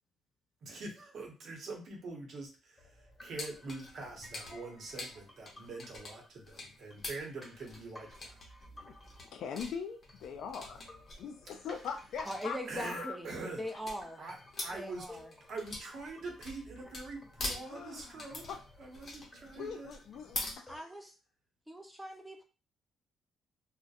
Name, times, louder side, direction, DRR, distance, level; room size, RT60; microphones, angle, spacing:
voice 1, 0.6-8.4 12.7-13.6 14.2-15.1 15.5-18.4 18.8-19.9, right 3 dB, 60° right, 0 dB, 0.8 m, -44 dB
sound 1, 2.8-20.8, left 1 dB, 15° left, 1.4 m, -57 dB
sound 2, 3.4-20.5, left 2 dB, 40° left, 0.7 m, -45 dB
voice 2, 9.2-10.8 11.2-13.2 17.6-18.6 19.6-20.9, left 6 dB, 75° left, 5 dB, 0.3 m, -42 dB
voice 3, 12.2-13.3 13.6-14.2 14.7-15.3 20.7-21.1 21.7-22.4, equal, 5° right, 3 dB, 0.5 m, -41 dB
2.5 x 2.1 x 2.4 m, 0.34 s
cardioid pair, 90°, 0 cm